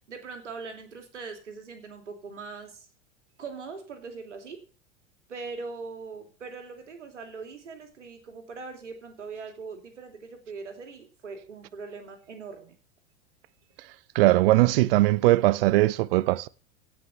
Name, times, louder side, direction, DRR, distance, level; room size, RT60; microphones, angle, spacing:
voice 1, 0.0-2.9 3.4-4.6 5.3-12.8, right 4 dB, 75° right, 3.0 m, -41 dB
voice 2, 13.8-16.5, right 18 dB, 50° right, 0.7 m, -21 dB
16.5 x 6.2 x 7.0 m
figure-of-eight pair, 85°, 36 cm